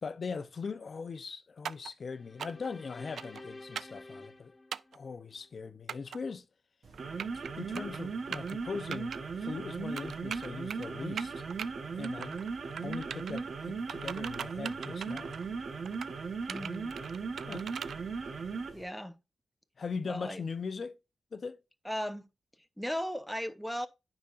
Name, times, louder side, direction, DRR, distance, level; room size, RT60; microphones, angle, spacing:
voice 1, 0.0-4.5 4.9-6.4 7.3-11.4 11.9-12.4 12.8-15.4 17.5-17.7 19.8-21.0 21.3-21.6, left 5 dB, 55° left, 0.6 m, -40 dB
sound 1, 1.6-1.9 2.4-2.7 3.2-3.4 3.7-4.0 4.7-5.0 5.9-6.2 6.9-7.5 7.7-8.0 8.3-8.5 8.9-9.2 10.0-10.9 11.2-11.7 12.0-12.5 12.8-13.4 13.9-15.5 15.8-16.1 16.5-18.0, right 7 dB, 90° right, 0.3 m, -40 dB
sound 2, 2.1-5.5, left 2 dB, 25° left, 1.5 m, -50 dB
sound 3, 6.8-18.8, right 5 dB, 60° right, 1.0 m, -38 dB
voice 2, 16.5-17.0 18.7-19.1 20.0-20.4 21.8-22.3 22.8-23.9, equal, ahead, 0.7 m, -36 dB
9.3 x 5.0 x 2.4 m
wide cardioid pair, 100°, 0 cm